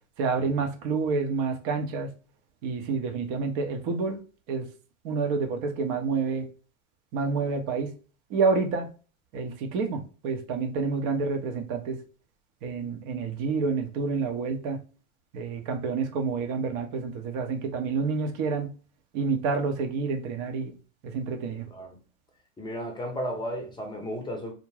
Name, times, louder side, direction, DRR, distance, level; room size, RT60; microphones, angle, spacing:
voice 1, 0.2-2.1 2.6-4.2 4.5-4.6 5.0-6.5 7.1-7.9 8.3-8.9 9.3-12.0 12.6-14.8 15.3-18.7 19.1-20.7 21.0-21.7, right 4 dB, 50° right, 0.7 m, -28 dB
voice 2, 22.6-24.5, equal, 10° left, 0.6 m, -34 dB
2.4 x 2.1 x 3.2 m
hypercardioid pair, 100°, 41 cm